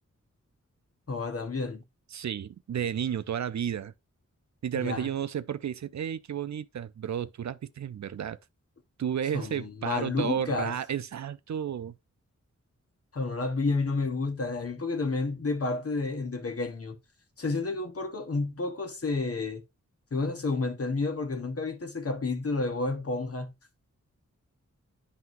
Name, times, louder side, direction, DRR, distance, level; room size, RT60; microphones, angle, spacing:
voice 1, 1.1-1.8 4.7-5.1 9.3-10.7 13.1-17.0 17.4-19.6 20.1-23.5, left 3 dB, 50° left, 1.2 m, -30 dB
voice 2, 2.1-3.9 4.6-8.4 9.0-12.0, right 9 dB, 70° right, 0.5 m, -32 dB
11.0 x 3.9 x 2.5 m
wide cardioid pair, 110°, 30 cm